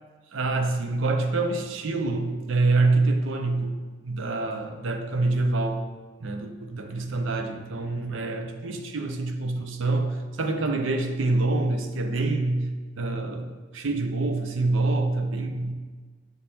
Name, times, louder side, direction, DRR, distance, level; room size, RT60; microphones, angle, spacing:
voice 1, 0.3-3.8 4.0-5.9 6.2-15.7, right 2 dB, 70° right, 6 dB, 0.6 m, -26 dB
6.5 x 3.4 x 4.2 m, 1.4 s
head